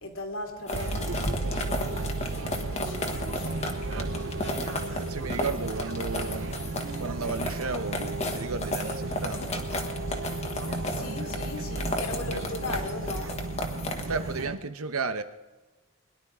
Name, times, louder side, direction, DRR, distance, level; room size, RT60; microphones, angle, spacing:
voice 1, 0.0-3.6 4.7-5.2 10.8-13.4, left 2 dB, 75° left, 1 dB, 2.8 m, -39 dB
sound 1, 0.7-14.4, left 1 dB, 30° left, 1.4 m, -35 dB
sound 2, 0.7-14.6, right 2 dB, 65° right, 0.7 m, -34 dB
voice 2, 5.0-6.6 7.0-9.7 12.3-12.5 14.1-15.2, right 4 dB, 85° right, 9 dB, 1.1 m, -34 dB
22.0 x 11.0 x 3.8 m, 1.2 s
head